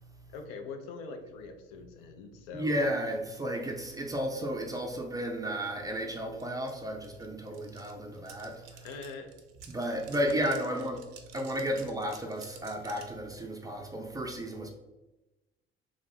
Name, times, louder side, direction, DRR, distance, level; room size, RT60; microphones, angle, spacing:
voice 1, 0.3-2.8 8.8-9.3 10.1-10.9 11.7-11.8, left 4 dB, 60° left, 5 dB, 0.5 m, -42 dB
voice 2, 2.5-8.9 9.7-11.0 11.3-14.7, equal, 10° right, 2 dB, 0.4 m, -33 dB
sound 1, 6.4-6.5 6.7-13.2, right 7 dB, 60° right, 0.5 m, -52 dB
3.6 x 2.5 x 3.2 m, 1.1 s
figure-of-eight pair, 50°, 30 cm